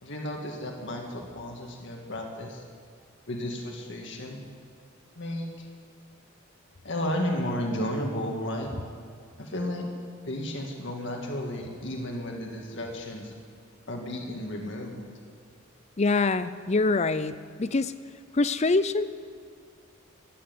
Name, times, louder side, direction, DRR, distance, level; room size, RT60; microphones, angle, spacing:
voice 1, 0.0-2.6 3.3-4.4 5.2-5.7 6.8-8.7 9.4-9.9 10.2-13.3 13.9-15.0, left 1 dB, 55° left, 1 dB, 1.9 m, -33 dB
voice 2, 16.0-17.3 17.6-17.9 18.3-19.1, left 3 dB, 30° left, 13 dB, 0.5 m, -24 dB
15.0 x 9.7 x 9.6 m, 2.2 s
head